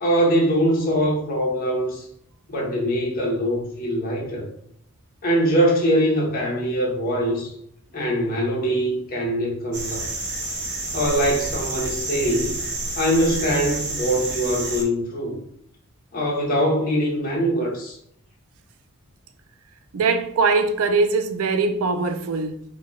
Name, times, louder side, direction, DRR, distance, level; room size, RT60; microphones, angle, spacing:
voice 1, 0.0-2.0 2.5-4.5 5.2-7.5 7.9-10.1 10.9-12.6 13.0-15.4 16.1-18.0, equal, 40° left, 1.0 m, -22 dB
sound 1, 9.7-14.8, right 2 dB, 50° right, 0.8 m, -29 dB
voice 2, 19.9-22.6, right 4 dB, 70° right, 0.4 m, -21 dB
4.0 x 2.3 x 3.0 m
head